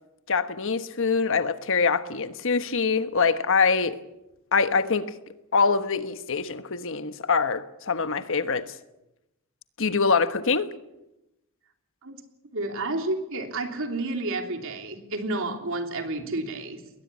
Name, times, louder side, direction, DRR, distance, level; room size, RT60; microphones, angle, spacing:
voice 1, 0.3-4.0 4.5-5.1 5.5-8.7 9.8-10.7, left 5 dB, 60° left, 1.2 m, -24 dB
voice 2, 12.5-16.8, right 2 dB, 65° right, 3.3 m, -30 dB
21.5 x 18.5 x 8.6 m
head